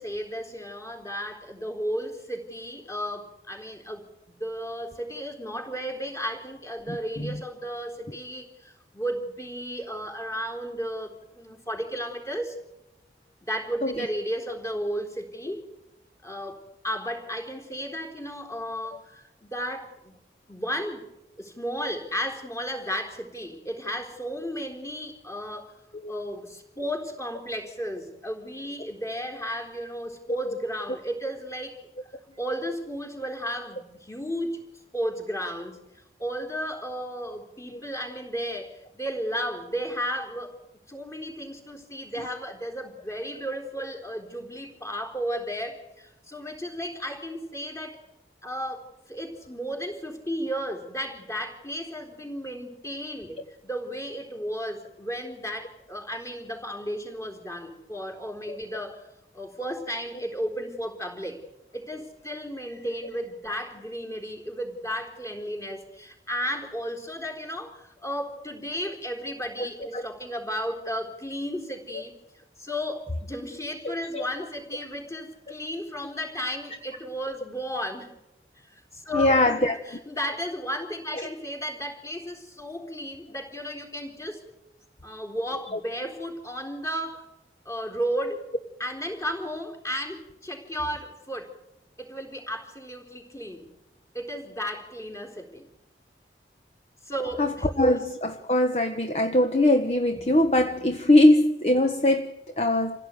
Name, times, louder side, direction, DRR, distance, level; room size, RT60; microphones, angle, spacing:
voice 1, 0.0-12.6 13.4-15.6 16.2-16.6 16.8-20.2 20.5-21.1 21.4-25.8 26.1-31.8 32.4-35.8 36.2-40.5 40.9-48.0 48.4-59.1 59.3-61.4 61.7-72.1 72.6-78.1 78.6-84.4 85.0-87.3 87.7-88.4 88.8-91.5 92.0-93.7 94.1-95.6 97.0-97.7, equal, 20° left, 4 dB, 4.0 m, -34 dB
voice 2, 6.9-7.3 13.8-14.0 26.0-26.1 69.6-69.7 69.9-70.0 74.1-74.2 79.1-79.7 85.7-85.8 97.4-103.0, left 1 dB, 35° left, 7 dB, 1.3 m, -22 dB
27.5 x 16.5 x 9.3 m, 0.91 s
head